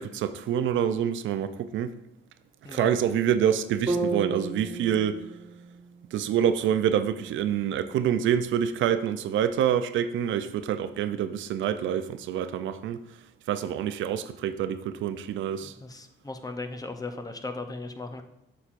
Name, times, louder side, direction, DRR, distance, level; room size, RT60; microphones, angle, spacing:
voice 1, 0.0-1.9 2.7-5.2 6.1-13.2 13.5-15.7, right 9 dB, 75° right, 0.5 m, -27 dB
sound 1, 3.9-7.9, right 3 dB, 20° right, 1.6 m, -35 dB
voice 2, 15.6-18.3, left 3 dB, 20° left, 0.6 m, -37 dB
8.0 x 5.8 x 2.5 m
cardioid pair, 90°, 20 cm